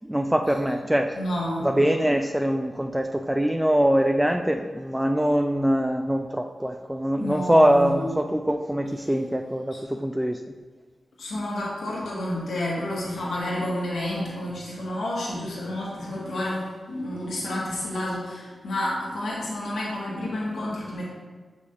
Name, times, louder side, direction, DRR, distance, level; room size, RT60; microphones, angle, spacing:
voice 1, 0.0-1.1 1.6-10.4, equal, 10° right, 4 dB, 0.3 m, -23 dB
voice 2, 1.2-1.7 7.1-8.1 9.7-9.8 11.2-21.1, left 1 dB, 85° left, -5 dB, 1.7 m, -30 dB
6.3 x 5.4 x 2.8 m, 1.4 s
cardioid pair, 50°, 0 cm